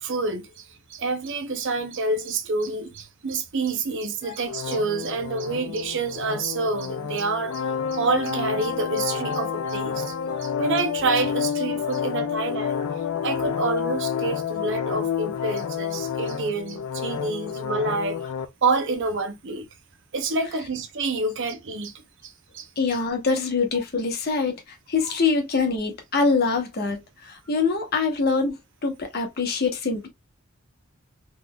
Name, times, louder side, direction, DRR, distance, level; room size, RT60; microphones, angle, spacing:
voice 1, 0.0-12.8 13.2-19.7 20.1-22.7, right 3 dB, 60° right, 0.6 m, -28 dB
sound 1, 4.5-18.4, left 7 dB, 80° left, 0.5 m, -29 dB
voice 2, 22.8-30.1, left 4 dB, 45° left, 1.0 m, -24 dB
3.8 x 3.1 x 2.2 m
head